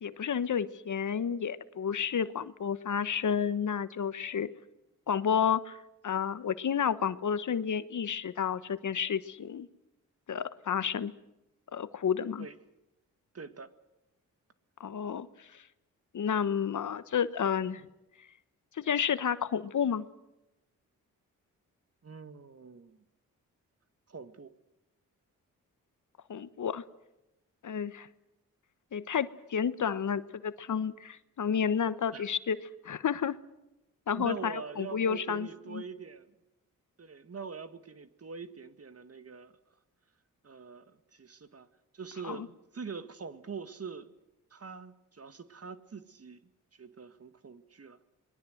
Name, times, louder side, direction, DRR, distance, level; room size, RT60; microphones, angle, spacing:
voice 1, 0.0-4.5 5.1-5.8 6.0-9.7 10.3-11.1 11.7-12.5 14.8-15.3 15.5-15.6 16.1-17.8 18.8-20.0 26.3-26.8 27.6-28.1 28.9-32.6 32.8-33.4 34.1-35.8 42.2-42.4, left 7 dB, 60° left, 14 dB, 1.2 m, -31 dB
voice 2, 13.3-13.7 22.0-23.0 24.1-24.5 32.1-32.2 34.1-36.3 37.0-39.5 40.4-40.8 41.1-41.7 41.9-44.1 44.5-46.4 46.7-48.0, right 5 dB, 45° right, 11 dB, 1.9 m, -44 dB
26.0 x 21.0 x 7.9 m, 0.93 s
cardioid pair, 55°, 34 cm